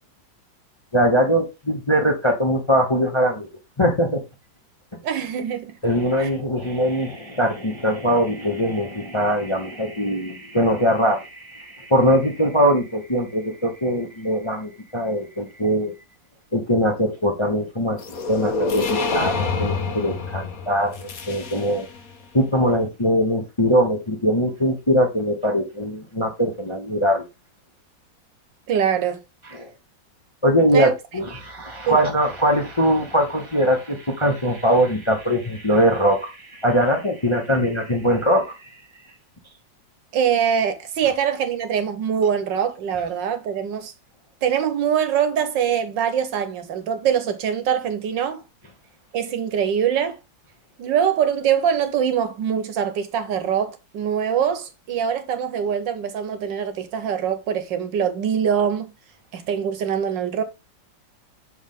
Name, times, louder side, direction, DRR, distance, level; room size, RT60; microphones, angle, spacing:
voice 1, 0.9-3.5 3.8-4.2 5.8-15.9 16.5-18.0 18.3-21.9 22.3-27.2 29.5-29.7 30.4-38.6, equal, 20° left, 0.8 m, -21 dB
voice 2, 5.0-5.8 6.2-6.3 28.7-29.2 30.7-30.9 31.3-31.4 31.9-32.0 40.1-43.9 44.4-48.4 49.1-50.2 50.8-58.9 59.3-60.4, right 8 dB, 75° right, 1.7 m, -23 dB
sound 1, 18.0-22.0, left 3 dB, 55° left, 1.4 m, -27 dB
6.4 x 4.8 x 3.7 m
omnidirectional pair, 2.0 m